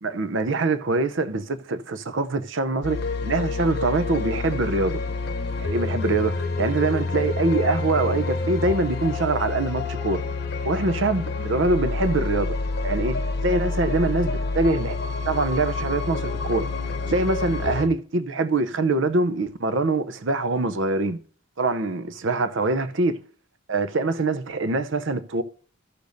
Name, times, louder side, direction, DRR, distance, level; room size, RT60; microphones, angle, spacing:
voice 1, 0.0-5.0 5.6-10.2 10.6-12.6 12.8-15.0 15.3-16.7 17.1-21.2 21.6-23.2 23.7-25.4, right 3 dB, 65° right, 0.7 m, -24 dB
sound 1, 2.8-17.9, left 3 dB, 50° left, 0.8 m, -28 dB
14.5 x 6.7 x 2.7 m
head